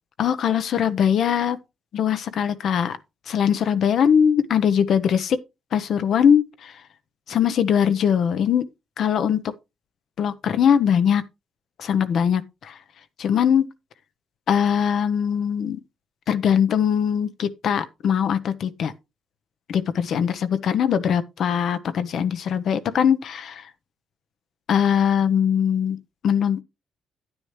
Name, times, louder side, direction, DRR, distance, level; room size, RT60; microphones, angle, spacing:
voice 1, 0.2-1.6 1.9-3.0 3.3-5.4 5.7-6.7 7.3-8.7 9.0-9.4 10.2-11.2 11.8-12.7 13.2-13.7 14.5-15.8 16.3-18.9 19.7-23.7 24.7-26.0 26.2-26.6, left 8 dB, 65° left, 0.9 m, -21 dB
9.7 x 9.6 x 3.1 m
cardioid pair, 90°, 0 cm